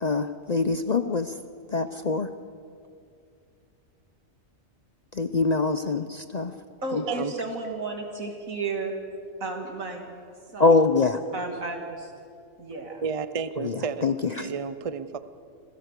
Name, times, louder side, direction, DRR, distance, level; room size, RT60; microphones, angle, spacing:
voice 1, 0.0-1.4 1.7-2.3 5.1-6.5 6.9-7.0 10.6-11.2 13.6-14.5, left 3 dB, 45° left, 10 dB, 0.6 m, -24 dB
voice 2, 6.8-8.9 9.4-10.0 10.5-10.8 11.3-12.1 12.6-13.0, right 3 dB, 85° right, 3 dB, 2.9 m, -33 dB
voice 3, 13.0-15.2, right 6 dB, 35° right, 12 dB, 0.6 m, -31 dB
26.5 x 16.5 x 6.7 m, 2.4 s
omnidirectional pair, 1.4 m